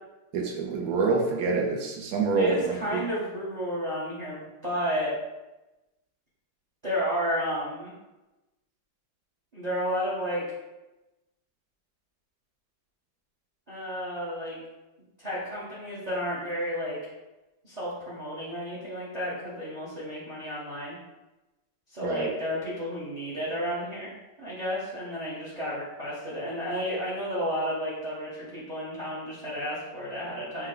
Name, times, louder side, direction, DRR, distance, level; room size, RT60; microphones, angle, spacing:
voice 1, 0.3-3.0 22.0-22.3, right 4 dB, 70° right, 0 dB, 0.9 m, -26 dB
voice 2, 2.3-5.1 6.8-7.9 9.5-10.4 13.7-14.6 15.2-17.0 17.6-21.0 21.9-24.1 24.4-30.7, equal, 40° right, -8 dB, 0.6 m, -32 dB
4.3 x 2.1 x 3.7 m, 1.1 s
omnidirectional pair, 2.0 m